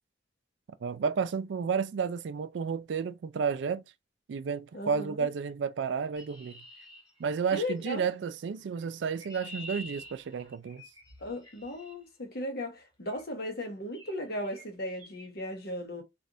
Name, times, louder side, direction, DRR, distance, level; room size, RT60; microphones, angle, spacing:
voice 1, 0.8-3.8 4.3-6.6 7.2-10.8, right 6 dB, 70° right, 0.4 m, -31 dB
voice 2, 4.7-5.3 7.5-8.0 11.2-16.0, left 1 dB, 60° left, 1.1 m, -36 dB
Chirp tweet, 6.2-7.8 8.8-12.0 13.1-13.3 13.9-14.2 14.4-14.7 15.0-15.3, equal, 25° left, 1.5 m, -48 dB
3.3 x 2.5 x 2.7 m
head